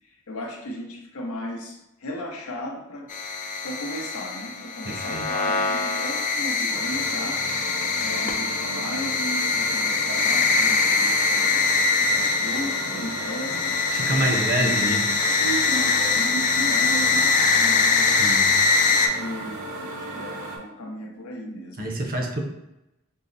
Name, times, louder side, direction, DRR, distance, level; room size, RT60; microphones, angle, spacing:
voice 1, 0.1-3.1 3.6-7.4 8.0-11.7 12.1-13.8 14.1-15.0 15.4-18.5 18.9-21.9, equal, 80° left, 1 dB, 0.7 m, -35 dB
sound 1, 3.1-19.1, left 4 dB, 35° left, 0.3 m, -23 dB
voice 2, 4.9-5.2 13.9-15.1 18.2-18.5 21.8-22.4, right 1 dB, 45° right, 2 dB, 0.6 m, -27 dB
sound 2, 6.7-20.6, right 2 dB, 85° right, 0.7 m, -35 dB
5.3 x 2.0 x 2.5 m, 0.89 s
head